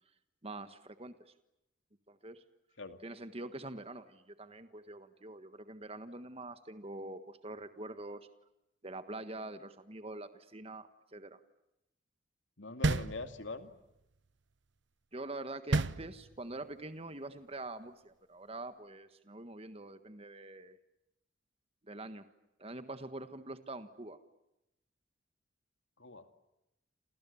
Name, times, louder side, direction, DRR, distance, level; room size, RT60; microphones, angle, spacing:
voice 1, 0.4-1.3 2.1-2.4 3.0-8.3 8.8-11.4 15.1-20.8 21.8-22.3 22.6-24.2, right 2 dB, 30° right, 10 dB, 1.5 m, -45 dB
voice 2, 12.6-13.7 26.0-26.4, left 3 dB, 70° left, 8 dB, 2.6 m, -43 dB
sound 1, 12.8-13.7 15.7-16.6, right 2 dB, 65° right, 0.9 m, -32 dB
29.0 x 28.5 x 7.1 m, 0.90 s
head